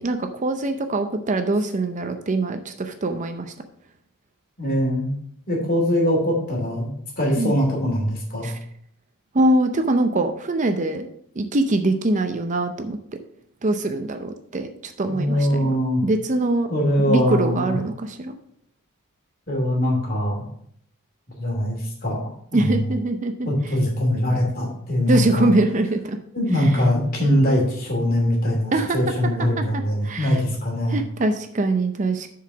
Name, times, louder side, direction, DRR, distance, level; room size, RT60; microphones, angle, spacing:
voice 1, 0.0-3.5 7.4-7.5 8.4-8.5 9.3-11.1 11.4-13.0 13.6-15.8 16.0-16.7 17.1-18.3 22.5-23.5 25.1-26.2 26.6-26.8 28.7-29.0 29.4-30.4 30.9-32.3, right 2 dB, 35° right, 8 dB, 0.5 m, -23 dB
voice 2, 4.6-5.1 5.5-8.5 15.1-16.0 16.7-17.7 19.5-20.5 21.3-22.9 23.4-25.5 26.3-31.0, left 1 dB, 40° left, -1 dB, 2.6 m, -22 dB
6.9 x 4.8 x 6.0 m, 0.68 s
head